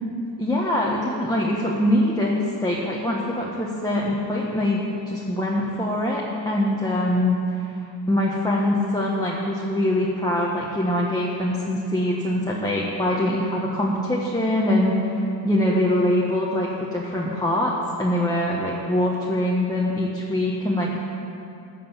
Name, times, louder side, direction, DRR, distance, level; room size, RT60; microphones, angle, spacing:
voice 1, 0.4-7.8 8.1-17.7 18.0-21.0, left 1 dB, 10° left, -4 dB, 1.5 m, -23 dB
14.0 x 5.3 x 8.3 m, 2.7 s
cardioid pair, 80°, 45 cm